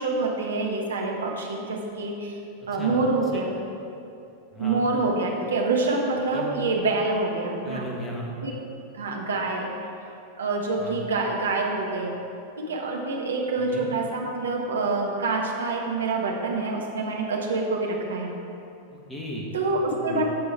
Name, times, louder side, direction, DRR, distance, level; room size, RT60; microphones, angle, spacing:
voice 1, 0.0-2.4 2.7-3.6 4.6-7.9 8.4-8.5 8.9-9.7 10.4-12.2 12.6-18.3 19.5-20.2, right 3 dB, 70° right, 0 dB, 1.4 m, -26 dB
voice 2, 4.5-4.8 6.3-6.5 7.6-8.4 10.8-11.0 13.6-13.9 18.9-19.5 19.9-20.2, left 1 dB, 15° left, -2 dB, 1.7 m, -36 dB
16.0 x 5.4 x 4.5 m, 2.7 s
figure-of-eight pair, 90°, 0 cm